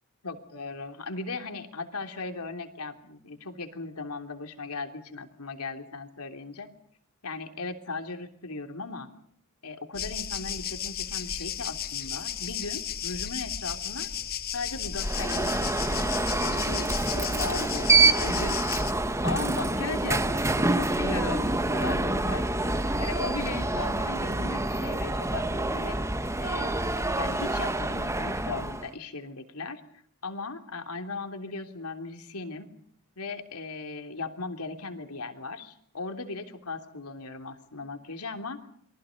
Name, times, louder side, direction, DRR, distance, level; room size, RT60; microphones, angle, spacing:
voice 1, 0.2-6.7 7.2-9.1 9.6-14.1 14.5-18.6 19.2-22.4 23.0-26.0 26.4-26.8 27.1-29.8 30.2-32.7 33.2-38.6, left 3 dB, 80° left, 6 dB, 3.3 m, -37 dB
sound 1, 9.9-18.9, left 8 dB, 45° left, 1.1 m, -34 dB
Alarm, 15.0-28.9, right 2 dB, 15° right, 1.2 m, -27 dB
29.5 x 23.5 x 5.3 m, 0.66 s
head